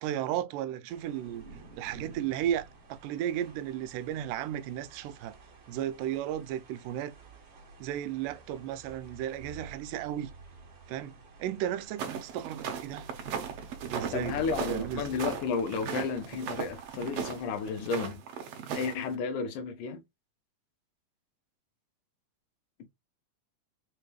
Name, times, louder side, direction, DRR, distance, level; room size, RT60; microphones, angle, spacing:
voice 1, 0.0-1.5 1.8-5.4 5.7-7.2 7.8-10.3 10.9-13.1 13.8-15.0, right 11 dB, 85° right, 2.1 m, -34 dB
sound 1, 0.9-18.0, right 4 dB, 45° right, 2.0 m, -51 dB
sound 2, 12.0-19.1, right 7 dB, 70° right, 1.6 m, -37 dB
voice 2, 14.1-18.2 18.7-20.0, left 5 dB, 85° left, 2.5 m, -32 dB
5.8 x 3.3 x 2.3 m
omnidirectional pair, 3.6 m